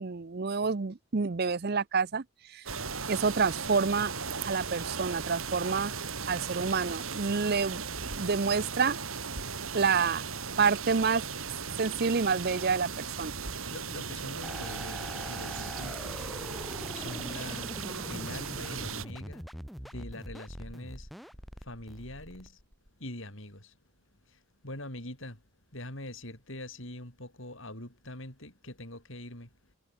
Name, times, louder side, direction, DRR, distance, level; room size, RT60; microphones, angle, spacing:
voice 1, 0.0-2.2 2.5-2.6 3.1-4.1 4.4-5.9 6.3-7.8 8.1-9.0 9.7-10.2 10.6-11.2 11.8-13.3, right 5 dB, 45° right, 0.6 m, -28 dB
sound 1, 2.7-19.1, right 5 dB, 70° right, 3.4 m, -37 dB
voice 2, 13.7-16.3 16.9-17.8 18.1-19.5 19.8-21.1 21.6-22.6 23.0-23.7 24.3-25.4 25.7-29.5, left 1 dB, 60° left, 5.9 m, -43 dB
sound 2, 14.4-22.9, equal, ahead, 1.5 m, -43 dB
head